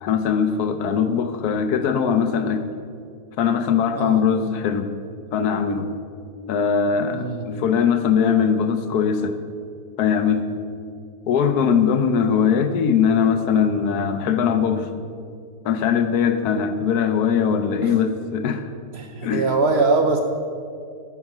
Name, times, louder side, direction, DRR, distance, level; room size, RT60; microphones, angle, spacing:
voice 1, 0.0-2.6 3.4-4.9 5.3-6.0 6.5-9.4 10.0-10.6 11.3-15.0 15.6-18.7 19.2-19.5, left 7 dB, 80° left, 9 dB, 1.2 m, -21 dB
voice 2, 7.1-7.5 18.9-20.2, right 3 dB, 55° right, 4 dB, 0.7 m, -21 dB
14.0 x 4.8 x 6.0 m, 2.3 s
omnidirectional pair, 1.6 m